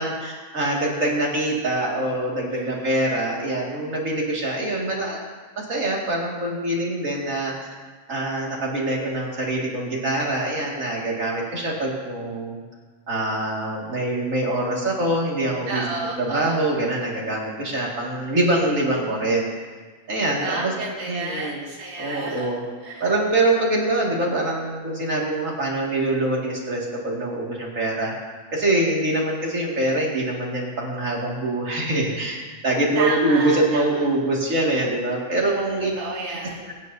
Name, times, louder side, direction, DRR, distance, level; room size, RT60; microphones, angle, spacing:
voice 1, 0.0-5.2 5.6-7.7 8.1-12.6 13.1-15.8 16.2-19.4 20.1-20.7 21.1-21.6 22.0-22.6 23.0-35.9, right 1 dB, 80° right, -3 dB, 2.7 m, -24 dB
voice 2, 2.5-2.9 15.7-16.6 20.2-22.5 22.8-23.1 32.9-34.1 35.3-36.7, right 3 dB, 60° right, -3 dB, 1.6 m, -31 dB
23.0 x 9.6 x 2.7 m, 1.4 s
omnidirectional pair, 1.3 m